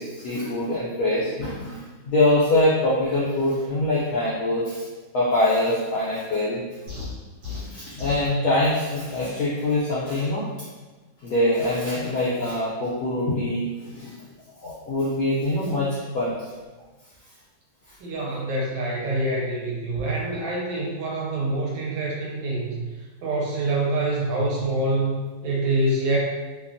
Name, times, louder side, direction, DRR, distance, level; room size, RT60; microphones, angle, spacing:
voice 1, 0.0-4.9 5.1-6.6 7.7-10.4 11.2-14.2 14.6-16.5, left 1 dB, 80° left, -7 dB, 0.8 m, -24 dB
sound 1, 6.9-8.3, left 4 dB, 60° right, 1.3 m, -35 dB
voice 2, 18.0-22.8 23.2-26.2, right 2 dB, 75° right, -3 dB, 1.4 m, -26 dB
3.2 x 2.2 x 2.5 m, 1.3 s
omnidirectional pair, 2.2 m